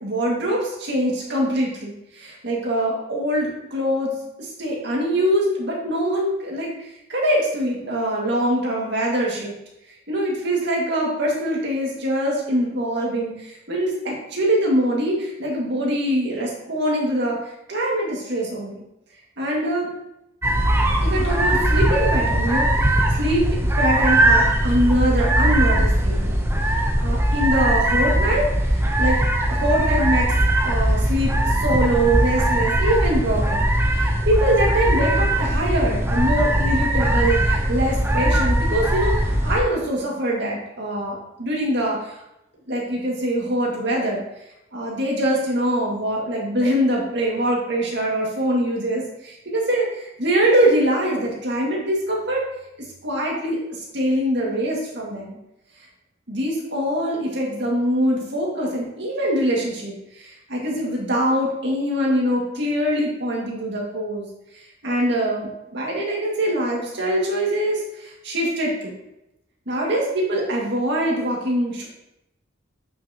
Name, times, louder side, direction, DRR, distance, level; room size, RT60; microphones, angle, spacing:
voice 1, 0.0-4.1 4.4-9.6 10.1-18.8 19.4-19.9 21.0-26.4 26.6-29.2 29.5-30.3 30.6-42.1 42.7-44.2 44.7-52.4 53.0-55.4 56.3-64.3 64.5-68.9 69.7-71.9, right 1 dB, 60° right, -3 dB, 2.0 m, -23 dB
sound 1, 20.4-39.6, right 1 dB, 10° right, 0.8 m, -20 dB
8.4 x 5.9 x 2.9 m, 0.86 s
head